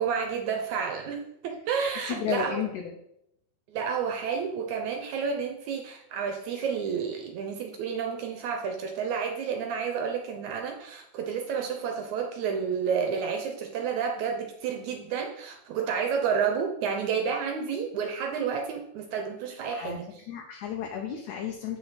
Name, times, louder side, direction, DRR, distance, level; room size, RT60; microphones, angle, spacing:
voice 1, 0.0-2.6 3.7-20.2, right 6 dB, 75° right, 3 dB, 1.9 m, -30 dB
voice 2, 2.1-3.0 19.7-20.0 20.3-21.8, left 8 dB, 75° left, 2 dB, 2.0 m, -33 dB
7.8 x 5.6 x 4.0 m, 0.77 s
omnidirectional pair, 3.9 m